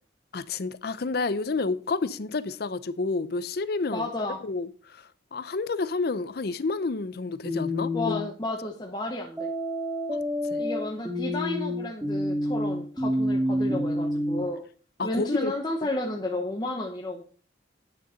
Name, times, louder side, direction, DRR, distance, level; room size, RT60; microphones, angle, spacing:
voice 1, 0.3-4.1 4.4-8.2 10.5-10.7 15.0-15.5, left 3 dB, 55° left, 0.5 m, -30 dB
voice 2, 3.9-4.4 7.9-9.5 10.6-14.6 15.0-17.2, left 2 dB, 20° left, 0.9 m, -32 dB
sound 1, 7.5-8.3 9.4-14.4, left 1 dB, 10° right, 2.1 m, -28 dB
9.0 x 6.8 x 5.1 m
head